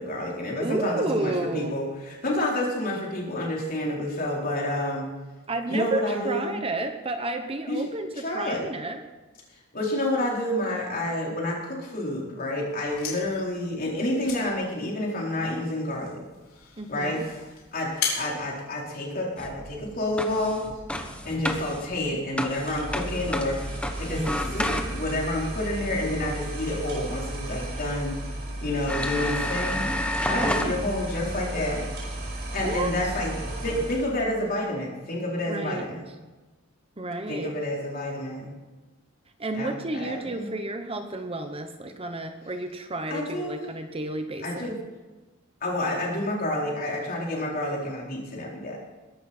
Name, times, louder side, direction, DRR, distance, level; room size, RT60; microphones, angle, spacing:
voice 1, 0.0-5.1 5.7-6.6 7.7-7.8 8.2-8.6 9.7-16.2 16.9-17.2 17.7-20.6 21.2-23.7 24.0-28.1 28.6-29.9 30.2-31.9 32.5-33.3 33.6-36.1 37.3-38.5 39.5-40.5 43.1-43.6 44.4-44.7 45.6-48.8, left 1 dB, 45° left, -3 dB, 4.1 m, -29 dB
voice 2, 0.6-1.7 5.5-9.0 16.8-17.2 24.1-24.5 30.2-30.8 32.6-32.9 35.5-35.9 37.0-37.5 39.4-44.7, right 2 dB, 25° right, 6 dB, 1.0 m, -31 dB
sound 1, 12.7-19.5, left 6 dB, 80° left, 4.1 m, -37 dB
sound 2, 19.4-25.2 27.4-27.5 28.1-28.2 28.9-30.7, left 1 dB, 5° left, 1.2 m, -31 dB
sound 3, 22.6-34.1, right 1 dB, 50° right, 5.1 m, -34 dB
21.5 x 11.5 x 4.4 m, 1.2 s
head